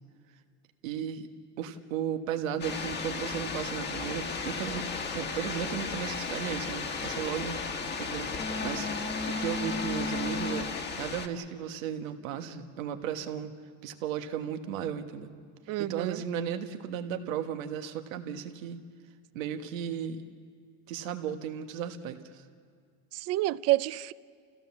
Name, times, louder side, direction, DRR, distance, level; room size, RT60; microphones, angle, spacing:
voice 1, 0.8-1.3 1.6-4.8 5.1-7.6 8.0-8.9 9.3-13.5 13.8-15.3 15.8-18.8 19.3-20.2 20.9-22.4, right 8 dB, 90° right, 7 dB, 1.4 m, -35 dB
sound 1, 2.6-11.3, left 4 dB, 25° left, 1.4 m, -34 dB
voice 2, 15.7-16.2 23.1-24.1, right 17 dB, 40° right, 18 dB, 0.5 m, -28 dB
29.0 x 16.0 x 7.0 m, 2.1 s
supercardioid pair, 125°, 38 cm